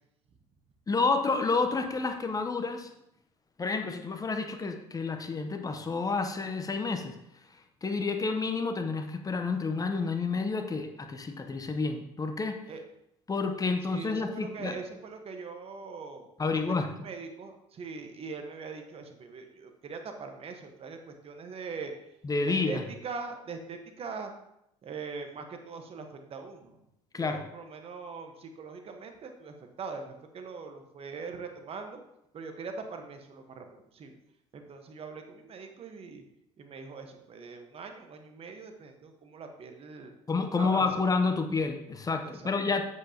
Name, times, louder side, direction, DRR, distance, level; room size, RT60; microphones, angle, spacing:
voice 1, 0.9-2.9 3.6-7.2 7.8-12.6 13.3-14.8 16.4-16.9 22.2-22.8 27.1-27.4 40.3-42.8, left 4 dB, 25° left, 6 dB, 0.9 m, -29 dB
voice 2, 13.8-16.3 16.5-21.9 22.4-24.3 24.8-26.8 27.1-32.0 32.3-34.1 34.5-36.2 36.6-40.1 40.6-40.8 42.2-42.5, right 4 dB, 45° right, 5 dB, 1.2 m, -42 dB
7.9 x 7.8 x 2.9 m, 0.81 s
hypercardioid pair, 70°, 14 cm